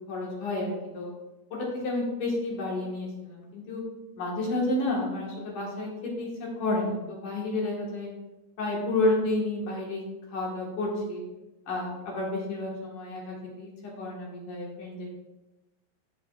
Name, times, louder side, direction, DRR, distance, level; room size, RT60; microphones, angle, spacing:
voice 1, 0.1-1.1 1.5-3.8 4.2-8.1 8.6-10.0 10.3-11.2 11.7-13.7 14.0-15.1, left 2 dB, 60° left, -3 dB, 2.3 m, -30 dB
13.5 x 5.9 x 2.3 m, 1.0 s
omnidirectional pair, 5.0 m